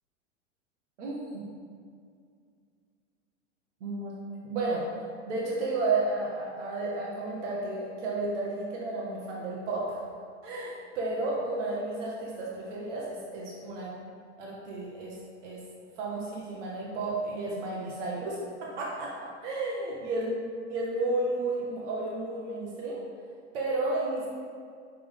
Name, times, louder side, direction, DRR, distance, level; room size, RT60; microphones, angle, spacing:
voice 1, 1.0-1.4 3.8-4.2 4.4-4.9 5.3-10.0 10.4-13.9 14.4-15.2 15.4-15.6 16.0-20.3 20.7-23.0 23.5-24.3, right 2 dB, 75° right, -4 dB, 1.8 m, -32 dB
8.9 x 6.8 x 3.6 m, 2.2 s
hypercardioid pair, 120°, 36 cm